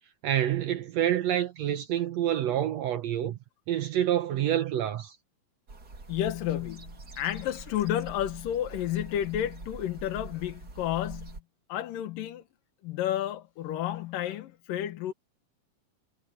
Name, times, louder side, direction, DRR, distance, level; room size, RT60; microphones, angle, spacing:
voice 1, 0.2-3.4 3.7-5.2, right 11 dB, 70° right, 1.7 m, -27 dB
sound 1, 5.7-11.4, right 3 dB, 30° right, 3.2 m, -45 dB
voice 2, 6.1-11.4 11.7-12.4 12.8-15.1, left 11 dB, 85° left, 2.9 m, -31 dB
omnidirectional pair, 3.8 m